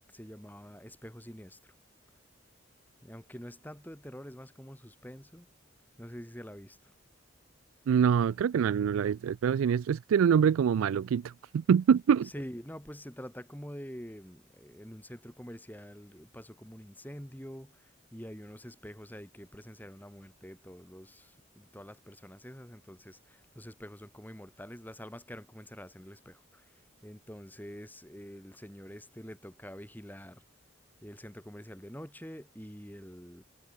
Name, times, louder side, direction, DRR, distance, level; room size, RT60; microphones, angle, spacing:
voice 1, 0.1-1.6 3.0-5.5 6.0-6.9 12.2-30.4 31.0-33.4, equal, 10° left, 3.9 m, -46 dB
voice 2, 7.9-11.2 11.5-12.3, right 7 dB, 85° right, 0.3 m, -25 dB
head